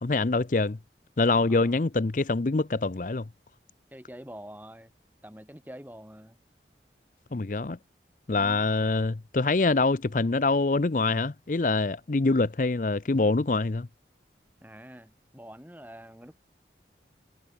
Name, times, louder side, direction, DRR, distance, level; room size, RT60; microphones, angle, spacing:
voice 1, 0.0-0.8 1.2-3.3 7.3-7.8 8.3-13.9, left 3 dB, 45° left, 0.6 m, -25 dB
voice 2, 1.3-1.8 3.9-4.9 5.2-6.4 8.3-8.7 14.6-16.3, equal, 10° right, 3.8 m, -46 dB
head